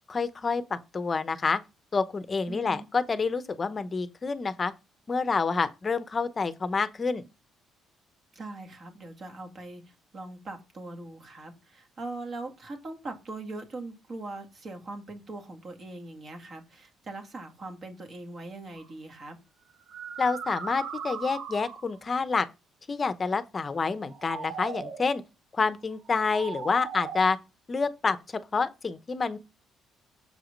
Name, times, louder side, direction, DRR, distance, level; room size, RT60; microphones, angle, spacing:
voice 1, 0.1-1.6 1.9-4.7 5.1-7.2 20.2-22.5 22.9-25.2 25.5-27.4 27.7-28.2 28.5-29.4, left 4 dB, 30° left, 0.8 m, -28 dB
voice 2, 2.5-2.9 8.3-19.4, right 2 dB, 40° right, 2.1 m, -41 dB
sound 1, 18.7-18.9 19.7-22.0 23.9-25.1 26.1-27.2, right 6 dB, 65° right, 1.0 m, -38 dB
6.8 x 4.9 x 5.2 m
cardioid pair, 115°, 0 cm